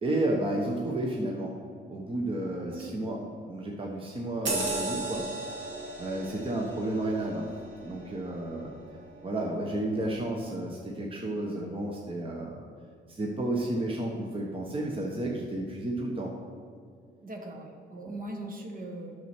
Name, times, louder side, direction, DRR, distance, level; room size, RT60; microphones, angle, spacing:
voice 1, 0.0-1.5 1.9-5.7 6.0-7.6 7.8-8.7 9.2-12.6 13.1-16.3, right 1 dB, 25° right, -1 dB, 1.2 m, -32 dB
voice 2, 2.7-3.0 17.2-19.2, right 1 dB, 45° right, 2 dB, 1.5 m, -40 dB
sound 1, 4.5-9.4 9.8-10.0, right 2 dB, 70° right, 1.8 m, -36 dB
9.2 x 6.6 x 4.5 m, 2.3 s
cardioid pair, 90°, 20 cm